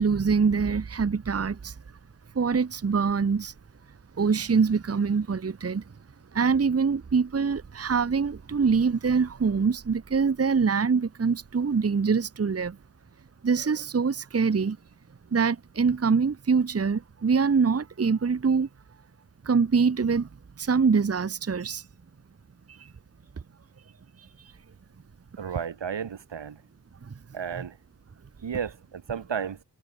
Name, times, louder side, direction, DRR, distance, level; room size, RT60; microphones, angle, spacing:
voice 1, 0.0-1.7 2.3-3.5 4.2-5.8 6.3-12.8 13.4-14.8 15.3-18.7 19.4-20.3 20.6-21.8 22.7-22.9 25.4-25.5 27.1-27.2, right 5 dB, 35° right, 1.0 m, -24 dB
voice 2, 25.4-26.6 27.3-27.8 28.4-29.6, right 7 dB, 85° right, 3.0 m, -33 dB
wide cardioid pair, 90°, 43 cm